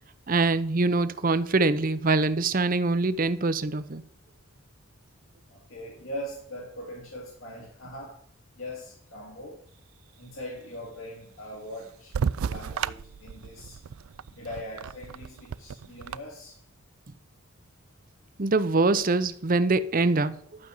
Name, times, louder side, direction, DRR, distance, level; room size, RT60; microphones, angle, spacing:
voice 1, 0.3-4.0 18.4-20.3, right 3 dB, 40° right, 0.7 m, -24 dB
voice 2, 5.5-8.2 8.5-9.6 10.2-12.2 12.4-13.8 14.3-16.6, left 1 dB, 75° left, 3.3 m, -41 dB
sound 1, 12.1-16.2, right 7 dB, 85° right, 0.4 m, -33 dB
12.0 x 5.3 x 7.7 m
head